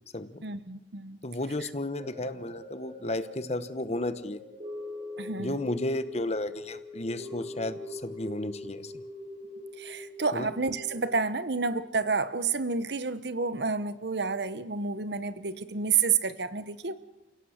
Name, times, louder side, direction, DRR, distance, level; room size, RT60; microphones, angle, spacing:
voice 1, 0.4-1.2 1.6-1.7 5.2-5.6 9.8-16.9, right 5 dB, 65° right, 14 dB, 1.1 m, -30 dB
voice 2, 1.2-4.4 5.4-9.0 10.3-10.5, left 1 dB, 35° left, 12 dB, 1.1 m, -33 dB
sound 1, 2.0-12.4 12.8-12.9, left 1 dB, 35° right, 5.2 m, -43 dB
29.5 x 17.0 x 6.6 m, 0.92 s
head